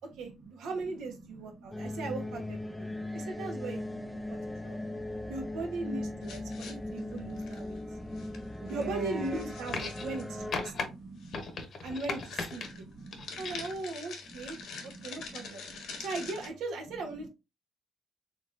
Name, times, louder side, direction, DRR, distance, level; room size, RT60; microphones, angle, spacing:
voice 1, 0.2-2.9 3.1-4.8 5.3-7.8 8.7-10.9 11.8-12.9 13.4-15.6 16.0-17.3, right 3 dB, 90° right, 1.1 m, -39 dB
voice 2, 1.3-2.0 2.7-3.4 4.2-5.1 6.5-6.6 7.3-8.3 8.6-9.4 9.9-11.4 12.6-13.6 14.3-16.0, right 4 dB, 45° right, 0.8 m, -46 dB
sound 1, 1.7-10.7, left 1 dB, 5° left, 0.3 m, -39 dB
sound 2, 6.2-7.8 8.2-8.4 8.7-10.3 11.2-11.3 11.7-11.9 12.2-16.5, left 5 dB, 80° left, 1.1 m, -45 dB
sound 3, 9.7-10.2 10.5-10.9 11.3-12.7 13.1-13.7 14.8-14.9, left 4 dB, 55° left, 0.9 m, -37 dB
3.7 x 3.5 x 2.5 m
cardioid pair, 90°, 0 cm